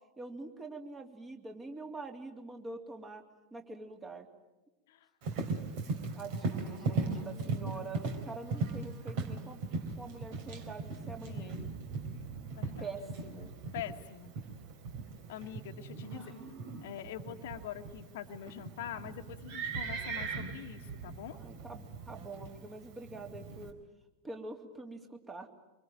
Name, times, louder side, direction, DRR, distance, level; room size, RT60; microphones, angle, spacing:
voice 1, 0.2-3.2 3.5-4.3 5.9-9.6 10.0-11.7 12.8-13.5 16.1-16.4 21.3-23.7 24.2-25.5, right 3 dB, 15° right, 4 dB, 3.2 m, -45 dB
Livestock farm animals working animals, 5.2-23.7, right 4 dB, 45° right, 3.8 m, -39 dB
voice 2, 6.6-8.0 11.2-11.6 12.5-14.3 15.3-16.4 16.8-21.4, left 10 dB, 55° left, 5 dB, 1.5 m, -45 dB
25.5 x 24.0 x 9.2 m, 1.0 s
figure-of-eight pair, 90°, 0 cm